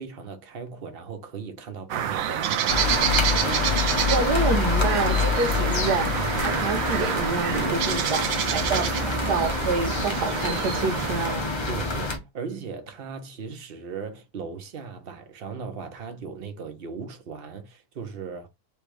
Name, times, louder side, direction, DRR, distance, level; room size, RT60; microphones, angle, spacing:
voice 1, 0.0-2.7 5.5-5.8 7.6-9.1 11.7-18.5, right 5 dB, 45° right, 0.9 m, -38 dB
sound 1, 1.9-11.3, right 10 dB, 70° right, 0.9 m, -28 dB
sound 2, 2.7-12.2, left 3 dB, 30° left, 0.5 m, -26 dB
voice 2, 4.1-6.1 6.4-11.4, right 4 dB, 85° right, 1.4 m, -28 dB
3.4 x 3.2 x 4.8 m
omnidirectional pair, 1.7 m